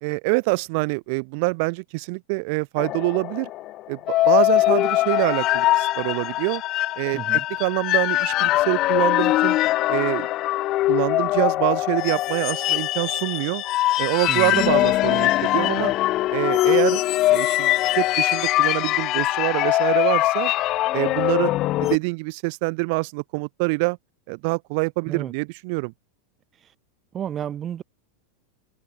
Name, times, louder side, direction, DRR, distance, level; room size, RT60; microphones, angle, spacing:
voice 1, 0.0-3.5 3.9-4.0 4.3-6.6 7.0-9.6 9.9-10.3 10.9-13.6 14.0-15.9 16.3-17.0 17.3-20.5 20.9-21.5 21.8-24.0 24.3-25.9, right 31 dB, 45° right, 2.3 m, -25 dB
sound 1, 2.8-22.0, left 16 dB, 30° left, 0.4 m, -22 dB
voice 2, 7.1-7.5 14.3-14.6 25.1-25.3 26.6-26.7 27.1-27.8, right 9 dB, 20° right, 4.3 m, -31 dB
supercardioid pair, 170°, 0 cm